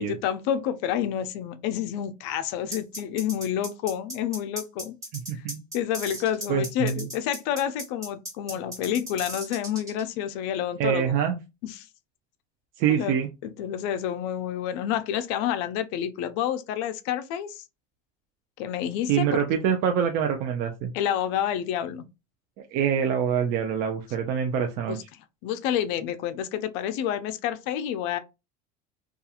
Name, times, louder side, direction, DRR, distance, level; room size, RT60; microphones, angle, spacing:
voice 1, 0.1-4.9 5.3-5.4 5.7-11.2 11.6-11.9 12.9-13.2 13.4-17.6 18.6-19.3 20.9-22.1 24.9-25.0 25.4-28.2, left 10 dB, 65° left, 0.4 m, -29 dB
sound 1, 2.7-10.0, right 1 dB, 15° right, 1.4 m, -37 dB
voice 2, 5.1-5.6 6.5-7.1 10.8-11.4 12.8-13.3 19.1-20.9 22.7-25.0, right 8 dB, 50° right, 0.4 m, -25 dB
2.8 x 2.4 x 2.4 m
cardioid pair, 145°, 20 cm